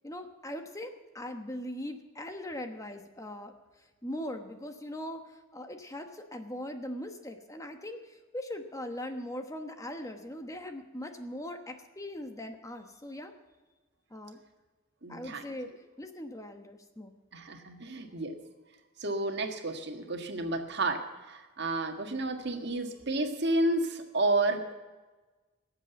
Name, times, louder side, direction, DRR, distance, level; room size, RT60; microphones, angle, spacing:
voice 1, 0.0-13.3 14.1-14.4 15.1-15.7 16.0-17.1, left 1 dB, 15° left, 6 dB, 1.1 m, -40 dB
voice 2, 15.0-15.4 17.3-18.3 19.0-24.7, right 2 dB, 55° right, 5 dB, 1.6 m, -31 dB
19.0 x 7.8 x 9.0 m, 1.3 s
head